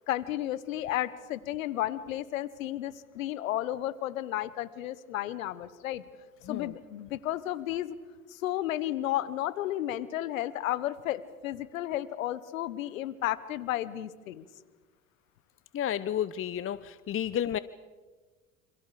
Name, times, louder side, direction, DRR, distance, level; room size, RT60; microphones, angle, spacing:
voice 1, 0.1-6.0 6.5-7.9 8.3-14.4, left 13 dB, 80° left, 17 dB, 1.3 m, -33 dB
voice 2, 6.4-6.8 15.7-17.6, left 10 dB, 30° left, 16 dB, 0.8 m, -31 dB
28.0 x 27.5 x 5.0 m, 1.3 s
hypercardioid pair, 70°, 40 cm